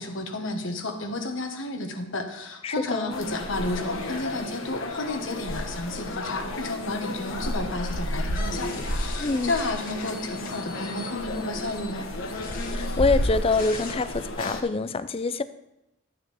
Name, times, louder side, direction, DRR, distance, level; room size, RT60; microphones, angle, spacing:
voice 1, 0.0-12.0, left 2 dB, 70° left, 5 dB, 1.4 m, -32 dB
voice 2, 2.6-3.2 9.2-9.5 12.7-15.4, left 3 dB, 30° left, 13 dB, 0.4 m, -25 dB
sound 1, 3.1-14.6, left 1 dB, 85° left, 1.2 m, -32 dB
sound 2, 8.3-13.9, left 3 dB, 45° left, 1.5 m, -42 dB
12.5 x 8.9 x 3.5 m, 0.88 s
head